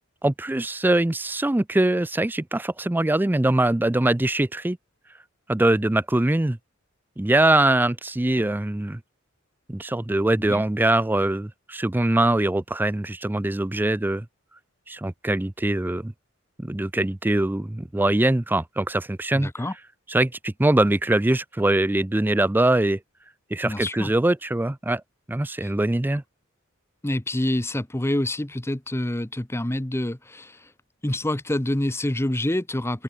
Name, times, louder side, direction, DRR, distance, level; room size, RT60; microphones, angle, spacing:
voice 1, 0.2-4.8 5.5-6.6 7.2-9.0 9.7-14.3 14.9-16.1 16.6-19.5 20.1-23.0 23.5-25.0 25.3-26.2, right 1 dB, 10° right, 0.4 m, -22 dB
voice 2, 19.3-19.7 23.6-24.1 25.6-25.7 27.0-30.7 31.0-33.0, left 1 dB, 10° left, 0.9 m, -27 dB
open air
head